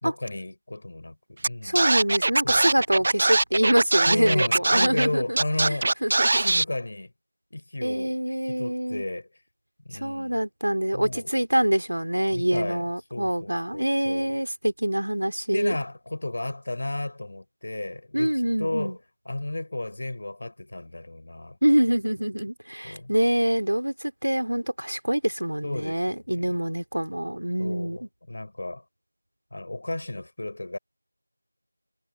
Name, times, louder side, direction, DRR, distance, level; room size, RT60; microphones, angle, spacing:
voice 1, 0.0-1.8 2.4-2.6 4.0-7.1 7.5-8.1 8.5-9.3 9.9-10.3 10.9-11.3 12.3-14.3 15.5-18.3 18.6-19.0 19.3-21.6 22.8-23.1 25.6-26.6 27.6-28.8 29.5-30.8, left 2 dB, 40° left, 3.7 m, -33 dB
Scratching (performance technique), 1.4-1.5 1.8-5.1 5.4-6.6, right 2 dB, 30° right, 0.4 m, -22 dB
voice 2, 1.6-5.4 5.7-6.4 7.8-9.0 10.0-15.8 18.1-18.9 21.6-28.0, right 1 dB, 70° right, 3.0 m, -25 dB
figure-of-eight pair, 175°, 0 cm